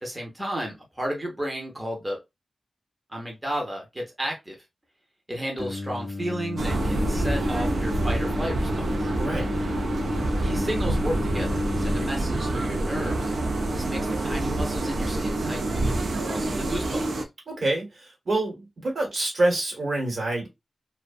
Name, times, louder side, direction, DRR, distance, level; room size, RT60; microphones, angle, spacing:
voice 1, 0.0-2.2 3.1-4.6 5.3-9.1 10.4-13.3 13.7-17.3, equal, 15° right, 0.6 m, -33 dB
Singing, 5.6-12.1, left 3 dB, 35° left, 0.4 m, -34 dB
sound 1, 6.6-17.2, right 2 dB, 75° right, 0.5 m, -27 dB
voice 2, 9.2-9.5 17.5-20.5, right 2 dB, 60° right, 1.1 m, -26 dB
2.5 x 2.1 x 2.4 m
wide cardioid pair, 130°, 0 cm